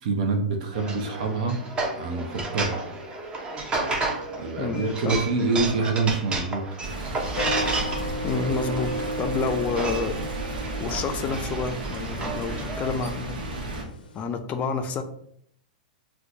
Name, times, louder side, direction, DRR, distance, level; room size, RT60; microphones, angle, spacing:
voice 1, 0.0-1.6 2.0-2.9 4.4-6.6, right 3 dB, 65° right, 4 dB, 0.7 m, -26 dB
sound 1, 0.7-12.9, right 3 dB, 20° right, 0.7 m, -32 dB
voice 2, 4.6-5.2 8.2-10.2 10.8-13.4 14.1-15.0, left 4 dB, 30° left, 7 dB, 0.4 m, -29 dB
sound 2, 6.8-13.8, right 2 dB, 85° right, 0.9 m, -33 dB
sound 3, 7.3-14.2, equal, 90° left, 0.5 m, -35 dB
4.3 x 2.2 x 2.6 m, 0.66 s
hypercardioid pair, 120°, 5 cm